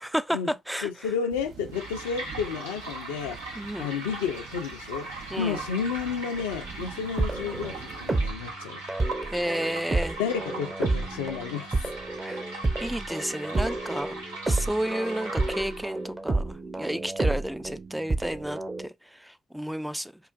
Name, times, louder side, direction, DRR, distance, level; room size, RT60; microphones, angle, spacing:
voice 1, 0.0-1.1 3.6-3.9 5.3-5.6 9.2-10.2 12.2-12.4 12.8-14.2 14.4-20.1, equal, 5° right, 0.3 m, -32 dB
voice 2, 0.8-3.4 3.8-8.8 10.2-11.8 14.5-14.6 17.2-17.4, left 7 dB, 80° left, 0.5 m, -31 dB
sound 1, 1.3-8.3, right 7 dB, 65° right, 0.5 m, -46 dB
sound 2, 1.7-16.0, right 2 dB, 85° right, 0.8 m, -40 dB
sound 3, 6.6-8.5 8.9-18.9, right 2 dB, 30° right, 0.8 m, -30 dB
4.5 x 2.5 x 2.4 m
hypercardioid pair, 40°, 0 cm